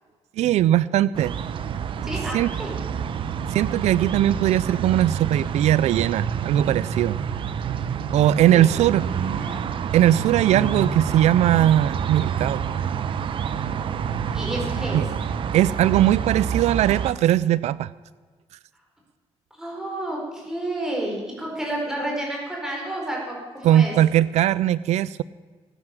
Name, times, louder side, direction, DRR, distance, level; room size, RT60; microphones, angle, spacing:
voice 1, 0.4-1.3 2.3-2.5 3.5-7.2 8.1-9.1 9.9-12.6 14.9-15.1 15.5-17.9 23.6-25.2, right 12 dB, 85° right, 18 dB, 0.4 m, -20 dB
sound 1, 1.1-17.1, right 7 dB, 50° right, 0.7 m, -28 dB
voice 2, 2.0-2.7 7.9-8.2 8.5-8.7 9.2-9.6 13.8-13.9 14.3-15.3 19.6-23.9, right 1 dB, 5° right, -2 dB, 4.9 m, -31 dB
19.0 x 9.7 x 7.6 m, 1.5 s
wide cardioid pair, 175°, 11 cm